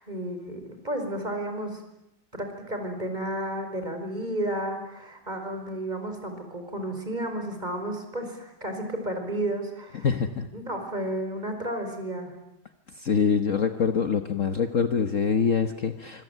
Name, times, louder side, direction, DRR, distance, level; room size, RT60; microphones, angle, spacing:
voice 1, 0.0-1.8 2.3-10.1 10.5-12.3, right 1 dB, 25° right, 5 dB, 5.2 m, -32 dB
voice 2, 10.0-10.5 13.0-16.2, left 6 dB, 50° left, 8 dB, 1.5 m, -24 dB
25.5 x 25.0 x 9.2 m, 0.85 s
omnidirectional pair, 1.9 m